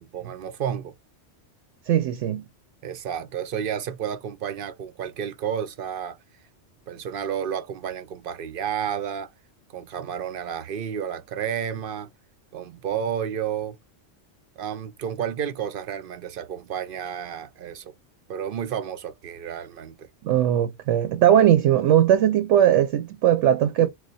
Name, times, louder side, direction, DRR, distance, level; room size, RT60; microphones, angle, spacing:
voice 1, 0.1-0.9 2.8-6.2 6.9-9.3 9.7-12.1 12.5-13.8 14.6-17.9 18.3-20.1, right 8 dB, 60° right, 0.6 m, -31 dB
voice 2, 1.9-2.4 20.2-23.9, right 11 dB, 80° right, 0.9 m, -19 dB
3.2 x 2.1 x 4.1 m
omnidirectional pair, 1.3 m